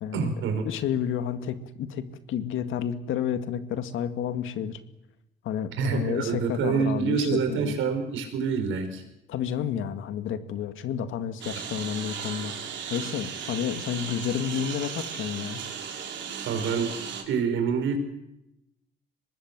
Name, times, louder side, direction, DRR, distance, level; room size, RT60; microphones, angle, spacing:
voice 1, 0.1-0.7 5.8-9.0 16.5-17.0 17.3-18.0, right 6 dB, 85° right, 6 dB, 5.5 m, -26 dB
voice 2, 0.7-4.8 5.4-7.8 9.3-12.5 12.9-15.6, left 9 dB, 80° left, 10 dB, 2.1 m, -30 dB
Engine, 11.4-17.2, right 7 dB, 65° right, 4.5 m, -36 dB
24.5 x 20.0 x 7.6 m, 0.86 s
cardioid pair, 90°, 20 cm